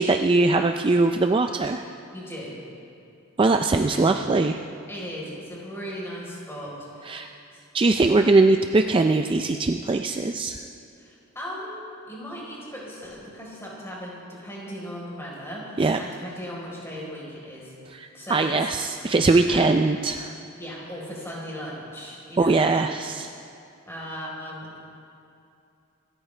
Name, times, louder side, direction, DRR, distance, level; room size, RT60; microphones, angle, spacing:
voice 1, 0.0-1.8 3.4-4.6 7.1-7.3 7.7-10.6 15.8-16.0 17.9-20.3 22.4-23.3, right 3 dB, 25° right, 6 dB, 0.4 m, -21 dB
voice 2, 2.1-2.5 3.8-4.2 4.9-7.6 11.0-17.7 18.1-18.7 19.5-19.6 20.6-22.6 23.9-24.8, equal, 10° left, -5 dB, 4.1 m, -38 dB
26.0 x 14.0 x 3.3 m, 2.6 s
head